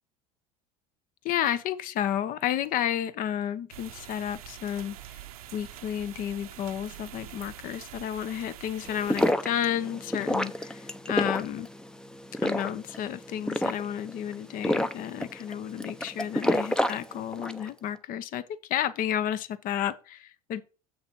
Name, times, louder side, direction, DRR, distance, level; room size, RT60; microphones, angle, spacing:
voice 1, 1.2-5.2 5.5-11.7 12.4-20.6, left 10 dB, 50° left, 0.9 m, -31 dB
sound 1, 3.7-9.3, right 12 dB, 85° right, 0.9 m, -45 dB
sound 2, 8.9-17.7, left 1 dB, 5° left, 0.6 m, -30 dB
7.2 x 6.4 x 4.7 m
hypercardioid pair, 90°, 18 cm